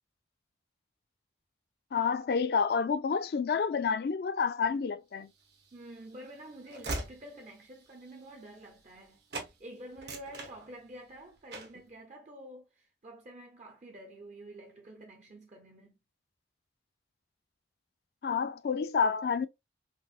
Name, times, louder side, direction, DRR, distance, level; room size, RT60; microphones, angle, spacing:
voice 1, 1.9-5.3 18.2-19.5, left 6 dB, 60° left, 0.3 m, -29 dB
Train / Slam, 5.4-9.1 9.3-9.5 9.9-11.1 11.5-11.8, right 2 dB, 70° right, 0.9 m, -42 dB
voice 2, 5.7-16.0, right 1 dB, 40° right, 0.5 m, -49 dB
4.3 x 2.1 x 2.3 m
head